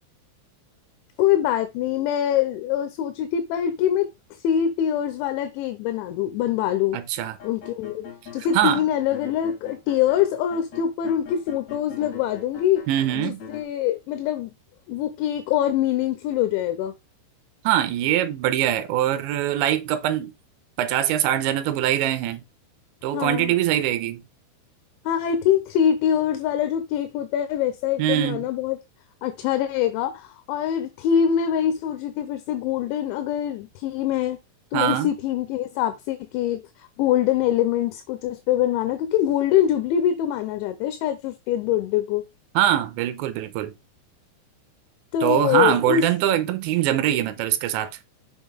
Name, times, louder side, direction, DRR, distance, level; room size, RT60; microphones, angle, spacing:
voice 1, 1.2-4.1 4.4-7.0 7.4-8.0 8.3-12.9 13.1-14.5 14.9-16.9 23.1-23.5 25.1-28.8 29.2-34.4 34.7-36.6 37.0-42.3 45.1-46.0, left 10 dB, 80° left, 3.0 m, -24 dB
voice 2, 6.9-7.4 8.5-8.8 12.9-13.4 17.6-20.3 20.8-22.4 23.0-24.2 28.0-28.4 34.7-35.1 42.6-43.7 45.2-47.9, right 12 dB, 80° right, 2.9 m, -23 dB
sound 1, 7.2-8.8 9.1-13.6, left 6 dB, 40° left, 3.6 m, -42 dB
6.9 x 6.0 x 3.6 m
omnidirectional pair, 5.6 m